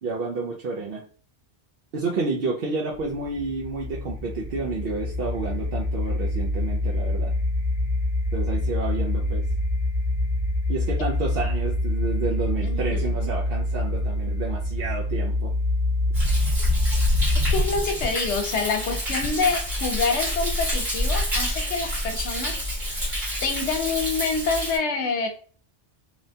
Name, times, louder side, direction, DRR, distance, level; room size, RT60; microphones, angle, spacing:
voice 1, 0.0-1.0 1.9-7.3 8.3-9.4 10.7-15.5, right 3 dB, 65° right, -3 dB, 0.7 m, -30 dB
sound 1, 2.9-17.8, left 1 dB, 35° left, 0.5 m, -26 dB
voice 2, 12.6-13.1 17.5-22.6 23.4-25.3, left 4 dB, 80° left, 5 dB, 0.9 m, -26 dB
Thunder, 16.1-24.8, equal, 45° right, 1.3 m, -27 dB
3.0 x 2.2 x 2.6 m, 0.42 s
omnidirectional pair, 1.2 m